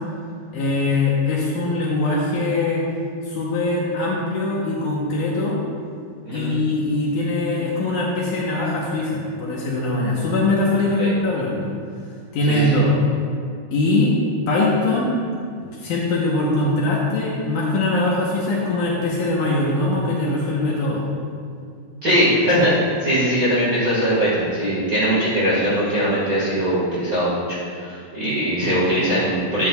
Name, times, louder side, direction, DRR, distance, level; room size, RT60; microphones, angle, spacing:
voice 1, 0.5-2.8 3.3-5.6 6.3-11.7 12.3-13.0 13.7-14.1 14.5-15.1 15.6-21.0 28.6-28.8, left 2 dB, 70° left, -4 dB, 2.2 m, -22 dB
voice 2, 6.2-6.5 11.0-11.1 12.5-12.8 22.0-29.7, equal, 35° right, -9 dB, 1.4 m, -21 dB
12.0 x 8.8 x 2.4 m, 2.3 s
omnidirectional pair, 4.3 m